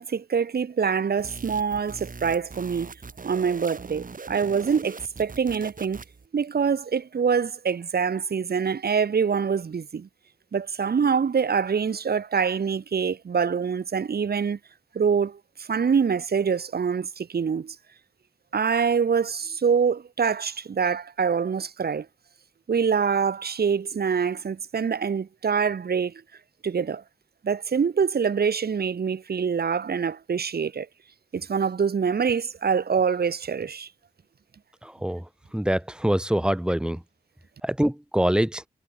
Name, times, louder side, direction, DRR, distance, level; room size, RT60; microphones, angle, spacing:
voice 1, 0.0-2.9 3.2-6.0 6.3-10.1 10.5-14.6 14.9-17.8 18.5-22.1 22.7-26.1 26.6-27.0 27.4-30.9 31.3-33.9, right 6 dB, 85° right, 6.6 m, -25 dB
sound 1, 1.2-6.3, right 4 dB, 60° right, 6.5 m, -41 dB
voice 2, 34.8-35.2 35.5-37.0 37.6-38.6, right 1 dB, 5° right, 2.5 m, -24 dB
cardioid pair, 55°, 16 cm